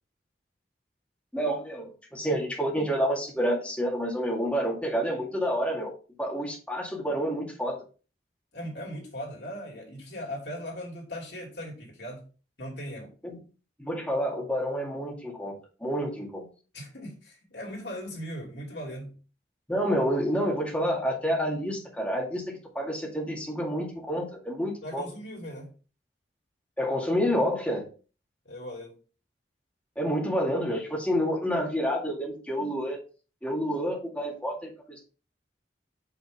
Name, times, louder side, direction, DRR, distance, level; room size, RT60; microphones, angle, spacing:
voice 1, 1.3-5.9 6.2-7.8 13.2-13.4 13.8-15.5 15.8-16.5 19.7-25.0 26.8-27.8 30.0-33.0 33.4-35.0, equal, 5° left, -3 dB, 2.0 m, -29 dB
voice 2, 8.5-12.3 12.6-13.1 16.7-19.2 24.8-25.7 28.4-29.0, equal, 75° left, -2 dB, 2.9 m, -39 dB
6.4 x 5.7 x 3.6 m, 0.35 s
head